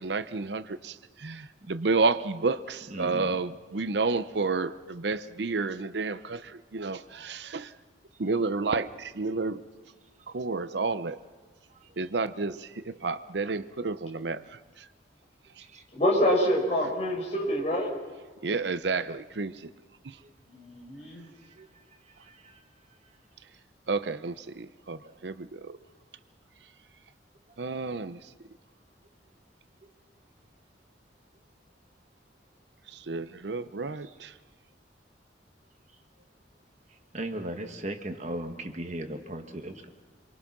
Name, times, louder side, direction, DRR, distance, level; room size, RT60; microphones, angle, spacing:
voice 1, 0.0-7.7 8.2-9.6 10.3-11.2 12.0-14.4 18.4-19.7 23.9-25.8 27.6-28.2 33.1-34.3, right 3 dB, 70° right, 13 dB, 0.7 m, -30 dB
voice 2, 2.9-3.4 7.3-7.4 11.7-12.1 15.6-15.8 20.2-20.3 21.5-21.7 22.1-22.6 34.0-34.1 37.1-39.9, right 1 dB, 40° right, 5 dB, 1.6 m, -38 dB
voice 3, 15.9-17.9 20.5-21.3, equal, 35° left, -1 dB, 5.6 m, -26 dB
27.0 x 23.0 x 6.1 m, 1.4 s
head